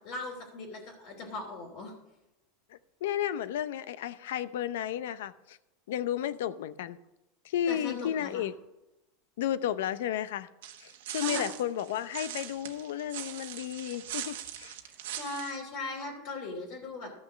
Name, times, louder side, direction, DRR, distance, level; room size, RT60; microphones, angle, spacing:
voice 1, 0.0-1.9 7.7-8.4 11.2-11.4 14.8-17.1, left 2 dB, 55° left, 3.0 m, -39 dB
voice 2, 2.7-5.6 5.9-7.0 7.4-8.5 9.4-10.5 10.8-14.7, left 11 dB, 85° left, 0.6 m, -33 dB
sound 1, 10.6-15.6, right 11 dB, 85° right, 1.2 m, -40 dB
13.0 x 6.3 x 6.3 m
supercardioid pair, 140°, 0 cm